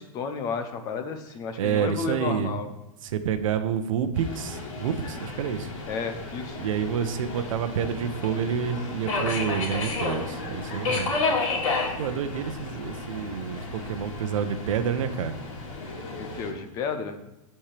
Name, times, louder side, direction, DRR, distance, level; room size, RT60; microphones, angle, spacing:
voice 1, 0.0-2.7 5.9-6.6 16.2-17.2, left 5 dB, 20° left, 7 dB, 0.6 m, -32 dB
voice 2, 1.6-2.5 3.0-5.7 6.6-11.1 12.0-15.3, right 8 dB, 65° right, 9 dB, 0.8 m, -28 dB
Subway metro underground, 4.1-16.5, left 3 dB, 60° left, 2.4 m, -32 dB
13.0 x 4.4 x 3.4 m, 0.93 s
supercardioid pair, 175°, 18 cm